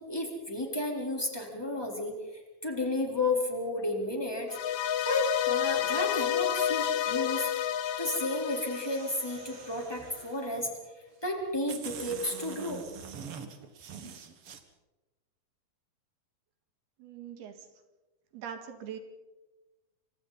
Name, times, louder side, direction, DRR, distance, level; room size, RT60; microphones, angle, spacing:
voice 1, 0.0-2.2 2.6-4.6 5.0-7.5 8.0-10.7 11.2-12.8, left 2 dB, 5° left, 1 dB, 3.6 m, -32 dB
sound 1, 4.5-9.8, left 10 dB, 70° left, 2.0 m, -30 dB
sound 2, 8.2-10.6 11.3-11.4 11.7-14.6, right 6 dB, 50° right, 1.9 m, -45 dB
voice 2, 17.0-17.7 18.3-19.0, right 8 dB, 90° right, 6 dB, 4.1 m, -42 dB
29.5 x 25.0 x 4.2 m, 1.1 s
omnidirectional pair, 4.4 m